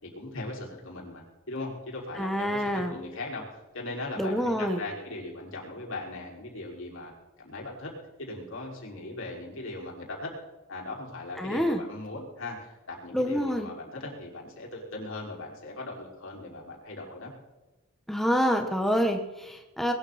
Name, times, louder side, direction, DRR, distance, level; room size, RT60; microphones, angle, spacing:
voice 1, 0.0-7.1 7.4-7.9 8.2-10.3 10.7-17.3, left 2 dB, 65° left, -2 dB, 5.5 m, -39 dB
voice 2, 2.2-3.0 4.2-4.8 11.4-11.8 13.1-13.7 18.1-19.9, equal, ahead, 3 dB, 1.3 m, -27 dB
21.5 x 13.5 x 4.3 m, 1.1 s
head